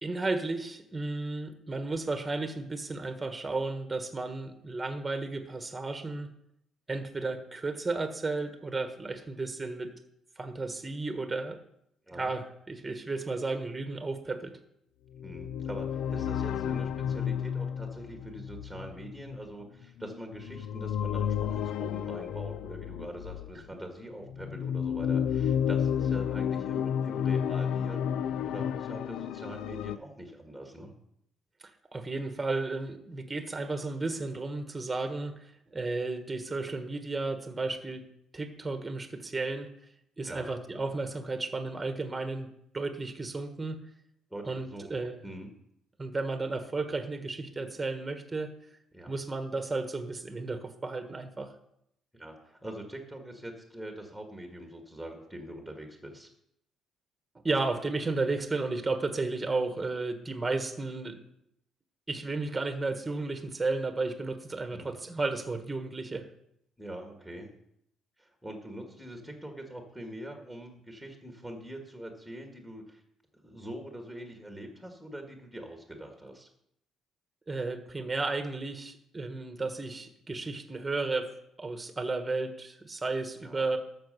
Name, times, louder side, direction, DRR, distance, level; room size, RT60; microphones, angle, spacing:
voice 1, 0.0-6.3 6.9-9.9 10.4-11.6 12.1-14.5 31.9-35.4 35.7-38.0 38.3-39.7 40.2-42.5 42.7-43.8 44.4-45.2 46.0-48.5 49.1-51.5 57.4-61.2 62.1-66.3 77.5-81.3 81.6-83.8, right 3 dB, 15° right, 7 dB, 1.4 m, -33 dB
sound 1, 15.1-23.6 24.3-30.0, left 8 dB, 80° left, 0.4 m, -31 dB
voice 2, 15.2-30.9 40.2-40.5 44.3-45.5 48.9-49.1 52.1-56.3 64.7-64.9 66.8-67.5 68.2-73.0 73.4-76.5 83.4-83.7, right 1 dB, ahead, 3 dB, 1.9 m, -43 dB
13.0 x 6.6 x 6.7 m, 0.75 s
cardioid pair, 125°, 0 cm